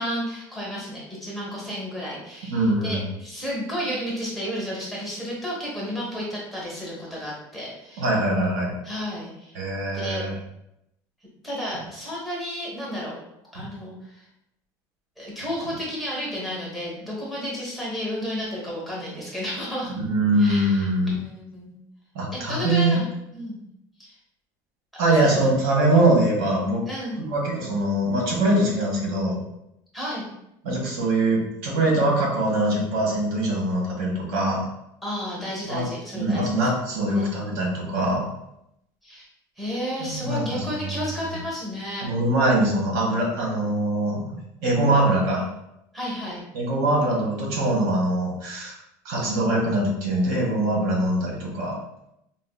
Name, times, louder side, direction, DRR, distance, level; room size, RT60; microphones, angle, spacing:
voice 1, 0.0-8.0 8.8-9.6 9.9-10.3 11.4-13.2 13.5-14.2 15.2-20.0 20.4-21.7 22.3-23.1 23.3-23.6 24.0-24.1 25.1-25.4 26.9-27.2 29.9-30.3 35.0-36.7 37.1-37.3 39.0-39.3 39.6-42.1 45.9-46.4, equal, ahead, -6 dB, 0.9 m, -32 dB
voice 2, 2.5-3.0 8.0-8.8 9.5-10.3 13.6-13.7 20.0-21.1 22.1-23.0 25.0-26.8 27.2-29.4 30.6-34.6 35.7-35.9 36.1-38.2 40.0-40.9 42.0-45.4 46.5-48.8 49.0-51.8, right 1 dB, 85° right, -2 dB, 1.2 m, -23 dB
3.8 x 2.6 x 2.3 m, 0.81 s
cardioid pair, 160°, 9 cm